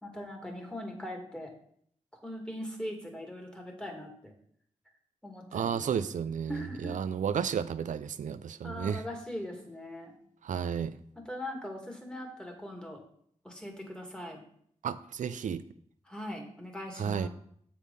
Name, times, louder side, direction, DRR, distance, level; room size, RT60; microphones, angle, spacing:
voice 1, 0.0-1.5 2.2-4.3 5.2-5.8 6.5-7.0 8.6-10.1 11.3-13.0 13.4-14.4 16.1-17.3, equal, 5° left, 2 dB, 2.1 m, -40 dB
voice 2, 5.5-9.0 10.4-10.9 14.8-15.6 17.0-17.3, right 7 dB, 90° right, 12 dB, 0.4 m, -32 dB
7.4 x 4.8 x 5.3 m, 0.64 s
cardioid pair, 60°, 13 cm